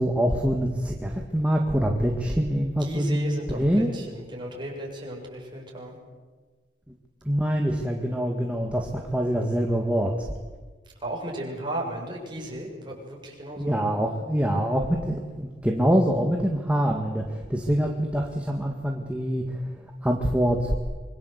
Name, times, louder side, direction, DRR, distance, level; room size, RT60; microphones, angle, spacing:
voice 1, 0.0-3.9 7.3-10.3 13.6-19.6 20.0-20.7, equal, 5° right, 1 dB, 1.9 m, -25 dB
voice 2, 2.8-6.0 11.0-13.8, right 1 dB, 25° right, -1 dB, 7.3 m, -35 dB
25.5 x 24.0 x 8.1 m, 1.4 s
head